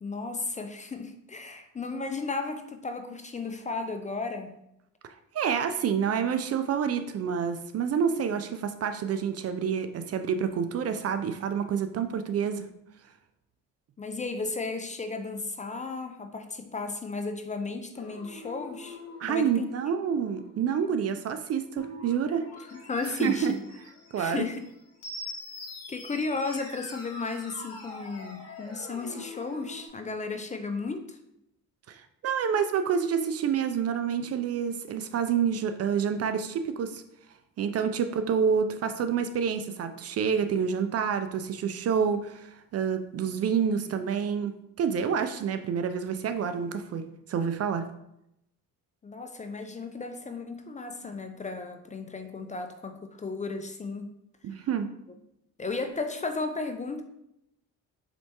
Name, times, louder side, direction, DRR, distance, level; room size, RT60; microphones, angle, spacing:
voice 1, 0.0-4.6 14.0-19.0 19.3-19.7 22.7-23.6 24.2-24.6 25.9-31.2 49.0-54.1 55.6-57.0, left 3 dB, 20° left, 6 dB, 0.4 m, -34 dB
voice 2, 5.3-12.7 19.2-22.4 23.0-23.5 24.1-24.4 31.9-37.0 37.6-47.9 54.4-54.9, right 7 dB, 45° right, 9 dB, 0.4 m, -28 dB
sound 1, 17.9-29.9, left 2 dB, 45° left, 1.2 m, -44 dB
4.2 x 3.3 x 2.9 m, 0.80 s
supercardioid pair, 75°, 35 cm